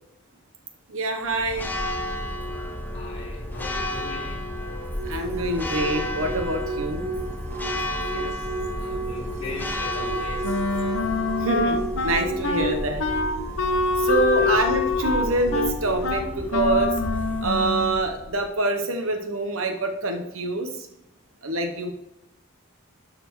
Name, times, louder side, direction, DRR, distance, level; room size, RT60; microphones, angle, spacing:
voice 1, 0.9-1.7 4.6-7.0 11.4-13.0 14.0-16.9 17.4-20.7 21.4-21.9, right 2 dB, 70° right, 5 dB, 1.0 m, -26 dB
Church bell, 1.3-18.5, left 1 dB, 10° left, 0.7 m, -32 dB
voice 2, 2.9-4.5 8.1-10.6 14.3-14.6, left 3 dB, 30° left, -7 dB, 2.5 m, -39 dB
sound 1, 5.0-16.2, right 3 dB, 30° right, 0.3 m, -34 dB
Wind instrument woodwind instrument, 10.4-18.0, left 3 dB, 65° left, 1.0 m, -25 dB
12.0 x 4.3 x 4.6 m, 0.87 s
head